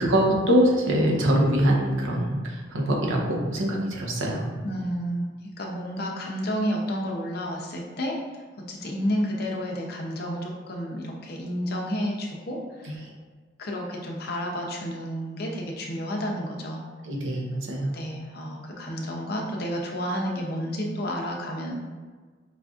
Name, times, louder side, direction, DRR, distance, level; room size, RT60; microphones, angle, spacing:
voice 1, 0.0-4.5 17.0-18.0, equal, 85° right, -1 dB, 0.8 m, -23 dB
voice 2, 4.6-5.3 5.6-13.0 13.6-16.9 17.9-21.7, equal, 55° left, 0 dB, 0.6 m, -31 dB
5.0 x 2.5 x 2.4 m, 1.4 s
head